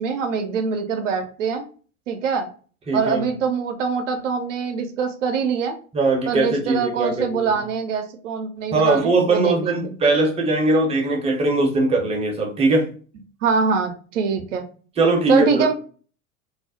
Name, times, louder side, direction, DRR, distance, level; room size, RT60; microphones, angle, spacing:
voice 1, 0.0-1.6 2.1-2.5 2.9-5.8 6.3-9.9 13.4-14.6 15.3-15.7, right 6 dB, 65° right, 5 dB, 0.5 m, -24 dB
voice 2, 2.9-3.2 5.9-7.6 8.7-12.9 15.0-15.7, right 2 dB, 15° right, 1 dB, 0.5 m, -20 dB
2.4 x 2.0 x 2.6 m, 0.40 s
figure-of-eight pair, 80°, 41 cm